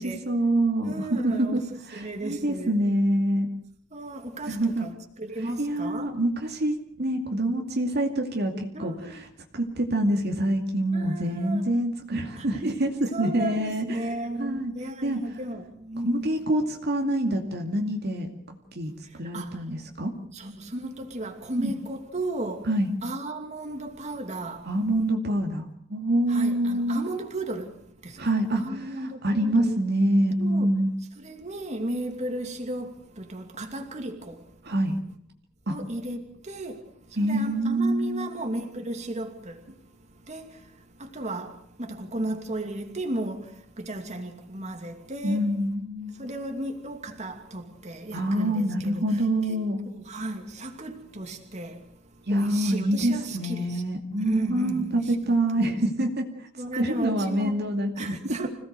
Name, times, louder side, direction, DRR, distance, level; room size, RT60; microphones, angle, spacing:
voice 1, 0.0-1.6 1.9-3.5 4.5-4.9 5.6-9.2 9.5-14.0 14.4-14.7 15.0-15.2 16.0-18.9 19.2-20.1 21.6-21.8 22.6-22.9 24.7-27.0 28.2-30.9 34.6-35.0 35.7-35.8 37.2-38.3 45.2-46.2 48.1-49.8 52.3-56.5 56.8-58.5, right 1 dB, 60° right, 2.4 m, -26 dB
voice 2, 0.8-2.8 3.9-6.1 8.7-9.2 10.9-11.6 12.4-12.5 13.1-16.4 19.3-19.5 20.3-22.7 23.0-24.7 26.3-27.7 28.0-28.3 28.6-29.8 30.4-30.7 31.2-34.4 35.7-36.8 37.2-39.6 40.3-40.5 41.0-41.5 41.8-43.5 43.8-45.5 46.2-49.2 49.5-49.6 49.9-51.8 52.3-53.8 54.2-55.4 56.6-57.6 58.0-58.5, right 1 dB, 35° right, 2.8 m, -34 dB
26.0 x 17.5 x 6.7 m
head